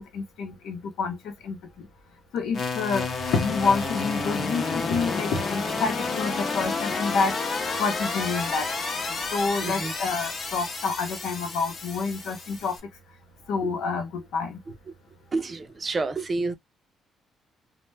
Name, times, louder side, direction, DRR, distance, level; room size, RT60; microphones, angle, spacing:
voice 1, 0.0-1.9 2.3-7.4 7.8-8.7 9.0-12.8 13.5-14.6, left 4 dB, 85° left, 0.7 m, -28 dB
sound 1, 2.5-12.8, left 4 dB, 50° left, 0.8 m, -30 dB
voice 2, 15.3-16.6, right 3 dB, 35° right, 0.5 m, -29 dB
2.1 x 2.1 x 3.2 m
cardioid pair, 90°, 0 cm